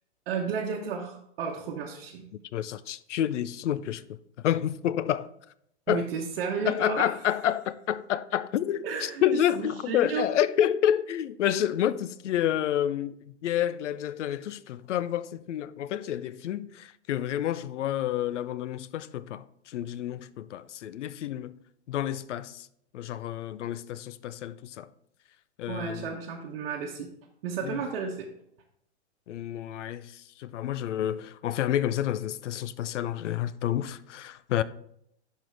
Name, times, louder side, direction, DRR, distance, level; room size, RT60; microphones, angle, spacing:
voice 1, 0.3-2.2 5.9-7.1 8.8-10.3 25.7-27.1 27.4-28.3, right 6 dB, 55° right, 1.0 m, -33 dB
voice 2, 2.5-4.2 4.4-5.3 5.9-6.1 6.7-13.2 13.4-21.6 21.9-22.7 22.9-24.9 25.6-26.2 27.6-27.8 29.3-34.6, left 11 dB, 85° left, 0.6 m, -29 dB
11.0 x 4.5 x 3.4 m
hypercardioid pair, 155°, 35 cm